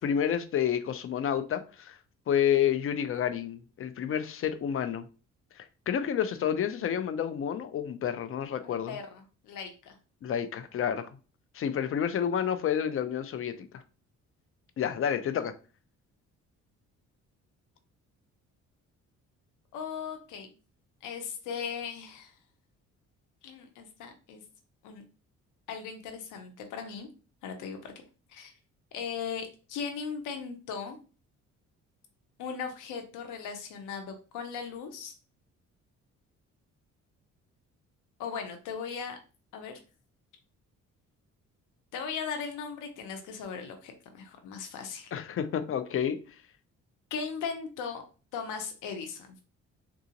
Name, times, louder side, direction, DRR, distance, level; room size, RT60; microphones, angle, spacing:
voice 1, 0.0-2.0 2.3-5.1 5.6-9.0 10.2-11.1 11.5-13.8 14.8-15.5 45.1-46.2, left 9 dB, 45° left, 0.5 m, -29 dB
voice 2, 8.6-10.0 19.7-20.5 21.0-22.3 23.4-24.4 24.8-25.0 25.7-27.1 27.4-27.9 28.3-28.5 28.9-31.0 32.4-35.1 38.2-39.2 39.5-39.7 41.9-45.1 47.1-48.0 48.3-49.4, left 6 dB, 90° left, 0.7 m, -38 dB
3.8 x 2.4 x 2.8 m
cardioid pair, 90°, 30 cm